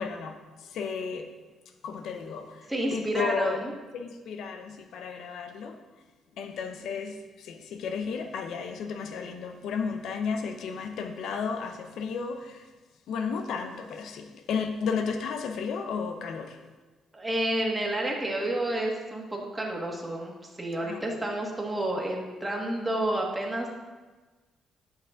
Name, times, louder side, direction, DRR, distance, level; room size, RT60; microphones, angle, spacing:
voice 1, 0.0-1.3 1.8-3.6 3.9-5.8 6.4-12.7 13.1-16.6 20.8-21.2, left 5 dB, 75° left, 7 dB, 0.6 m, -33 dB
voice 2, 2.7-3.7 17.1-23.7, right 1 dB, 10° right, -1 dB, 1.7 m, -30 dB
10.5 x 5.9 x 3.8 m, 1.3 s
cardioid pair, 90°, 0 cm